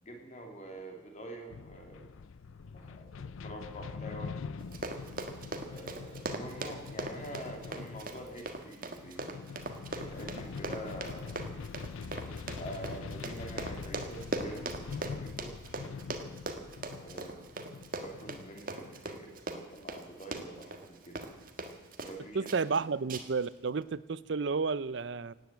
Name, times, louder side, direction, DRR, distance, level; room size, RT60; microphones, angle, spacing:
voice 1, 0.0-2.1 2.7-4.3 5.6-9.4 9.9-11.4 12.6-14.7 15.1-15.6 16.9-17.4 18.0-21.3 22.0-22.5, right 1 dB, 35° left, 2 dB, 3.1 m, -46 dB
sound 1, 1.5-19.0, left 5 dB, 85° left, 0.5 m, -44 dB
Run, 4.6-22.2 22.4-22.8 23.1-23.5 23.8-23.9, right 2 dB, 45° right, 1.6 m, -40 dB
voice 2, 22.3-25.3, right 4 dB, 60° right, 18 dB, 0.5 m, -31 dB
17.0 x 9.3 x 8.8 m, 1.2 s
head